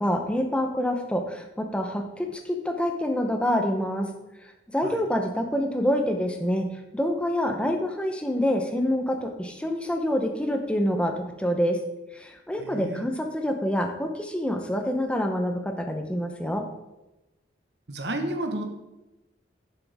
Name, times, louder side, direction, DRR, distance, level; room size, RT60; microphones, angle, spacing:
voice 1, 0.0-4.1 4.7-6.7 6.9-11.8 12.1-16.6, equal, 5° left, 4 dB, 0.8 m, -26 dB
voice 2, 12.6-13.0 17.9-18.6, right 1 dB, 65° right, 5 dB, 1.2 m, -31 dB
10.5 x 7.1 x 3.5 m, 0.99 s
head